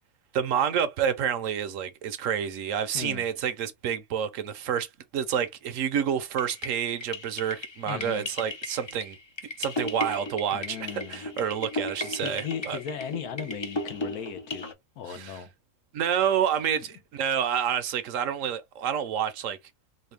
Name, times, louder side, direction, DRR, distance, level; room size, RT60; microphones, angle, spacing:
voice 1, 0.3-4.9 5.1-9.2 9.6-12.8 15.1-15.4 15.9-19.6, right 8 dB, 65° right, 0.9 m, -28 dB
voice 2, 2.9-3.3 7.9-8.3 10.5-11.3 12.2-14.7 15.0-15.5, left 8 dB, 80° left, 1.2 m, -37 dB
sound 1, 6.4-14.7, left 2 dB, 50° left, 0.3 m, -36 dB
4.2 x 2.2 x 3.3 m
omnidirectional pair, 1.6 m